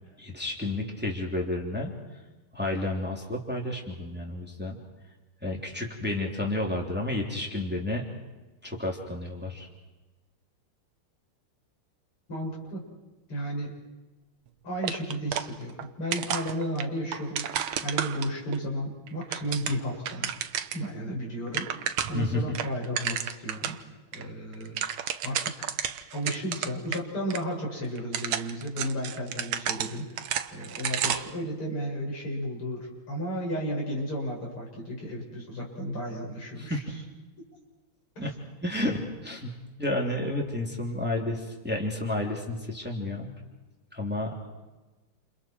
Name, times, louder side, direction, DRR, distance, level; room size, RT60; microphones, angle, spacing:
voice 1, 0.0-1.9 2.5-4.8 5.4-8.0 8.6-9.7 22.1-22.6 36.6-36.8 38.2-38.3 38.6-39.5 39.8-43.3 43.9-44.5, left 1 dB, 5° right, 0 dB, 3.2 m, -31 dB
voice 2, 12.3-12.8 13.3-13.7 14.6-20.3 20.7-21.7 22.1-23.8 24.1-24.8 25.2-30.2 30.5-36.8 38.2-38.3, equal, 80° left, -2 dB, 7.4 m, -33 dB
sound 1, 14.8-15.9 16.1-18.6 19.1-20.9 21.2-21.3 21.5-22.3 22.5-23.8 24.1-24.2 24.5-27.0 27.3-27.4 28.0-31.4, right 9 dB, 75° right, 1.7 m, -32 dB
29.5 x 29.0 x 4.6 m, 1.2 s
omnidirectional pair, 2.4 m